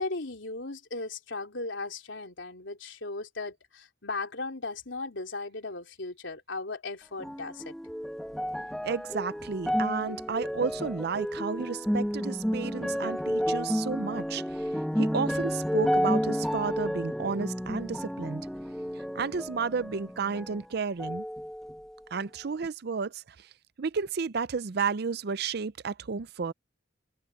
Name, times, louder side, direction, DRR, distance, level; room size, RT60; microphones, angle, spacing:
voice 1, 0.0-7.8, left 3 dB, 75° left, 3.5 m, -37 dB
sound 1, 7.2-20.7 21.0-21.9 22.6-22.7, equal, ahead, 1.1 m, -31 dB
voice 2, 8.8-14.6 15.0-18.4 19.0-21.3 22.1-23.5 23.8-26.5, right 5 dB, 55° right, 0.5 m, -32 dB
head